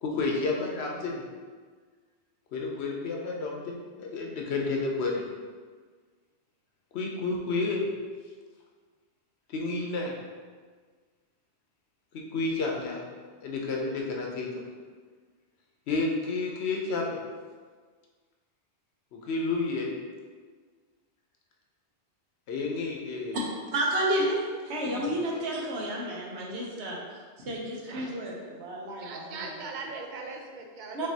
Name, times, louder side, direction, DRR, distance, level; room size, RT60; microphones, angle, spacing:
voice 1, 0.0-1.2 2.5-5.2 6.9-7.8 9.5-10.1 12.1-13.1 13.4-14.5 15.9-17.2 19.1-19.9 22.5-23.4 24.8-25.1, left 3 dB, 75° left, 0 dB, 0.9 m, -30 dB
voice 2, 23.7-24.4 24.6-27.0 27.4-29.4 30.9-31.1, right 1 dB, 85° right, -2 dB, 1.1 m, -31 dB
voice 3, 29.0-31.1, right 3 dB, 55° right, 2 dB, 0.6 m, -39 dB
5.2 x 2.7 x 2.7 m, 1.5 s
omnidirectional pair, 1.1 m